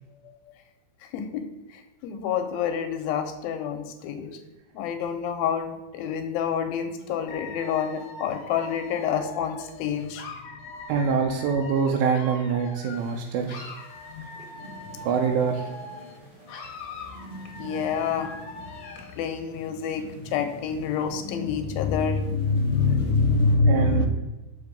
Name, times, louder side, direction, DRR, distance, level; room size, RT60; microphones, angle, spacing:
voice 1, 1.0-1.5 1.7-4.3 4.7-10.3 14.1-14.3 17.6-18.3 19.2-24.1, left 5 dB, 80° left, 6 dB, 2.5 m, -27 dB
Dog / Alarm, 7.3-13.2 13.5-16.2 16.5-19.2, left 3 dB, 65° left, 1.8 m, -42 dB
voice 2, 10.9-13.8 15.0-15.7 23.7-24.1, right 6 dB, 85° right, 1 dB, 2.5 m, -25 dB
sound 1, 12.9-23.5, equal, 55° right, 0.6 m, -46 dB
6.6 x 5.5 x 5.1 m, 1.1 s
omnidirectional pair, 4.3 m